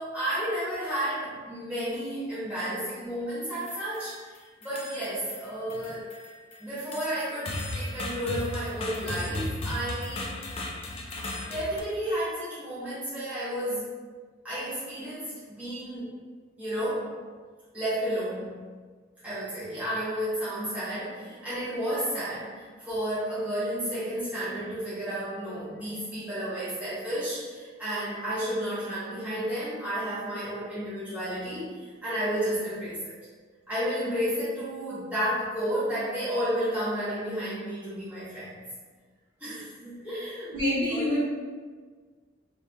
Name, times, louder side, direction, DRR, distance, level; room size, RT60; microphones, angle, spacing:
voice 1, 0.0-6.1 6.6-10.3 10.6-11.2 11.4-13.9 14.4-16.2 16.6-17.1 17.7-18.7 19.2-33.1 33.7-38.5 39.4-40.5 40.9-41.1, equal, 10° right, -13 dB, 0.9 m, -32 dB
sound 1, 3.4-4.2 4.6-5.4 5.7-11.8, left 1 dB, 30° left, 0.3 m, -36 dB
voice 2, 40.5-41.2, left 1 dB, 50° right, -9 dB, 1.4 m, -26 dB
2.5 x 2.5 x 3.3 m, 1.5 s
head